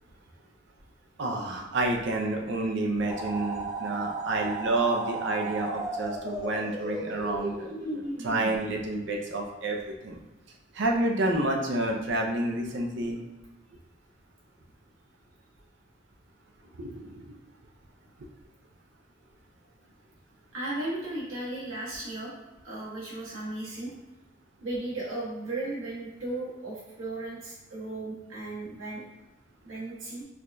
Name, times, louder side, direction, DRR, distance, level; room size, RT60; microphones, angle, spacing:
voice 1, 1.2-10.2 10.7-13.2 16.8-17.3, right 2 dB, 60° right, 1 dB, 0.5 m, -29 dB
sound 1, 3.1-8.6, right 2 dB, 20° right, 0.6 m, -35 dB
voice 2, 20.5-22.3 22.6-23.9 24.6-29.0 29.6-30.2, right 2 dB, 75° right, -6 dB, 1.3 m, -35 dB
4.6 x 2.3 x 2.5 m, 1.0 s
head